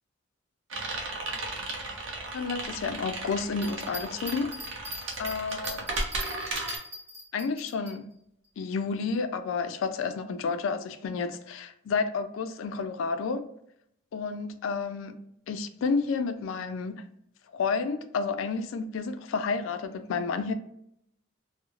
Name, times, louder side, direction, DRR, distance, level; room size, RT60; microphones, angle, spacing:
sound 1, 0.7-6.8, right 2 dB, 80° right, 0.6 m, -35 dB
voice 1, 2.3-4.5 5.2-5.8 7.3-8.1 8.6-13.5 14.1-15.2 15.5-17.1 17.5-20.5, left 4 dB, 85° left, 0.3 m, -30 dB
sound 2, 3.5-8.0, equal, 35° right, 1.2 m, -41 dB
3.0 x 2.0 x 2.3 m
head